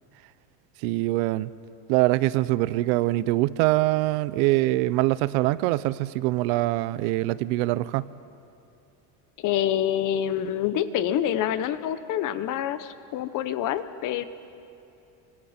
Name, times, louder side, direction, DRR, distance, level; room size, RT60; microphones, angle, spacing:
voice 1, 0.8-1.5 1.9-8.1, right 18 dB, 75° right, 18 dB, 0.7 m, -24 dB
voice 2, 9.4-14.2, left 10 dB, 45° left, 12 dB, 1.0 m, -27 dB
29.0 x 25.5 x 4.4 m, 2.6 s
cardioid pair, 145°, 43 cm